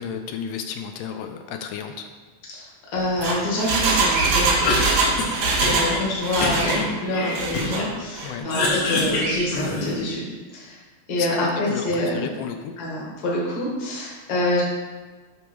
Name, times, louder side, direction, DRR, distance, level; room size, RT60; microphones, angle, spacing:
voice 1, 0.0-2.1 5.6-6.0 8.2-8.5 11.2-12.7, left 7 dB, 85° left, 6 dB, 2.2 m, -33 dB
voice 2, 2.9-4.6 5.6-10.2 10.5-10.8 11.1-12.2 12.8-14.6, left 1 dB, 40° left, -5 dB, 1.7 m, -26 dB
Engine, 3.0-6.0 6.2-6.8 7.3-7.8 8.2-8.3, right 4 dB, 85° right, 2.7 m, -23 dB
Bird vocalization bird call bird song, 4.1-4.4 6.5-6.8 9.1-9.5, right 2 dB, 60° right, 2.0 m, -28 dB
Cough, 4.4-6.0 6.4-7.9 8.2-10.1, left 2 dB, 60° left, 2.0 m, -26 dB
8.1 x 3.5 x 6.1 m, 1.3 s
omnidirectional pair, 3.8 m